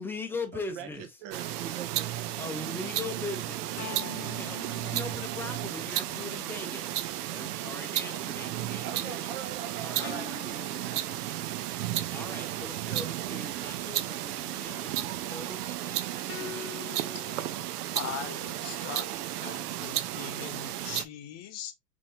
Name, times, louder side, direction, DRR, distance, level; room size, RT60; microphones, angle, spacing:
voice 1, 0.0-1.1 2.4-7.0 7.3-9.3 9.8-10.1 12.1-16.9, left 3 dB, 5° left, 0.6 m, -40 dB
voice 2, 0.5-2.3 4.4-4.8 8.1-8.2 8.8-11.0, right 8 dB, 45° right, 1.0 m, -43 dB
sound 1, 1.3-21.0, right 13 dB, 70° right, 0.6 m, -34 dB
sound 2, 3.8-6.3 10.0-11.8 16.3-17.7, left 9 dB, 65° left, 1.0 m, -45 dB
voice 3, 17.9-19.1 19.4-21.7, left 9 dB, 35° left, 0.9 m, -40 dB
4.4 x 3.0 x 2.9 m
hypercardioid pair, 110°, 48 cm